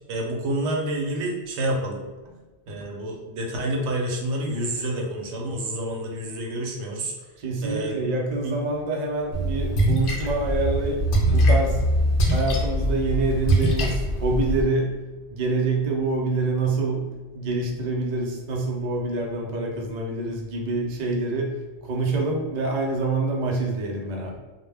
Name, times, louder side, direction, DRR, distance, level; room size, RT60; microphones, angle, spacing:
voice 1, 0.1-2.0 2.7-7.1 7.6-8.1, right 1 dB, 85° right, 0 dB, 0.9 m, -28 dB
voice 2, 7.4-11.9 12.3-15.0 15.3-24.4, right 2 dB, 50° right, -1 dB, 0.6 m, -26 dB
Splash splatter, 9.3-14.6, equal, 60° left, 0.7 m, -22 dB
2.1 x 2.1 x 3.3 m, 1.2 s
omnidirectional pair, 1.1 m